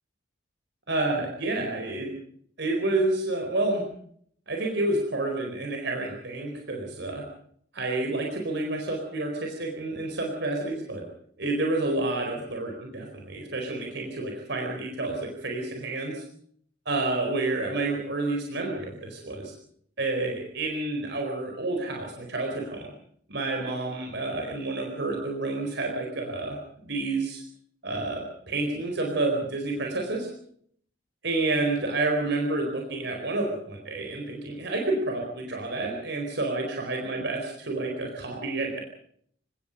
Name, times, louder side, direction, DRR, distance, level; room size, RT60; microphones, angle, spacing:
voice 1, 0.9-2.1 2.6-3.8 4.5-7.2 7.7-11.0 11.4-16.2 16.9-19.5 20.0-22.9 23.3-26.6 26.8-27.4 27.8-30.3 31.2-38.8, right 2 dB, 65° right, 1 dB, 4.4 m, -29 dB
28.5 x 18.0 x 5.3 m, 0.64 s
head